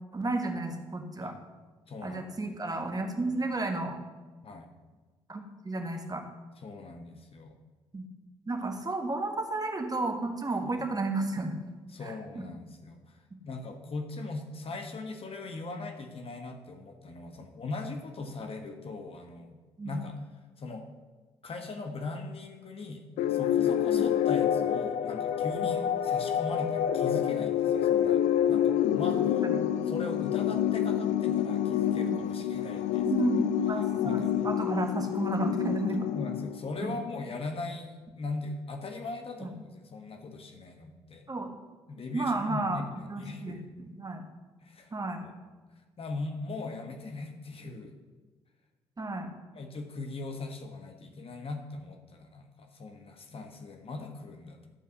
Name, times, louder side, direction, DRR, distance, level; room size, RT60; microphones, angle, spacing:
voice 1, 0.1-1.3 2.0-4.0 5.3-6.2 7.9-8.0 8.5-11.5 12.0-12.4 19.8-20.0 23.9-24.0 29.4-29.6 31.9-32.2 33.0-36.1 36.8-36.9 39.4-39.5 41.3-41.5 42.1-42.8 43.1-44.2 44.9-45.2 49.0-49.4, right 2 dB, 30° right, 4 dB, 1.6 m, -32 dB
voice 2, 1.9-2.6 4.4-4.7 6.6-7.6 10.6-10.9 11.9-13.0 13.4-19.6 19.8-20.2 20.6-20.9 21.4-28.2 28.5-29.5 29.9-33.1 33.3-33.4 34.0-34.3 36.1-41.3 41.9-43.7 44.6-44.9 45.2-45.3 46.0-47.9 49.5-54.6, left 3 dB, 45° left, 5 dB, 1.4 m, -39 dB
sound 1, 23.2-36.9, left 10 dB, 65° left, 0.5 m, -28 dB
12.0 x 5.5 x 6.3 m, 1.3 s
hypercardioid pair, 45°, 13 cm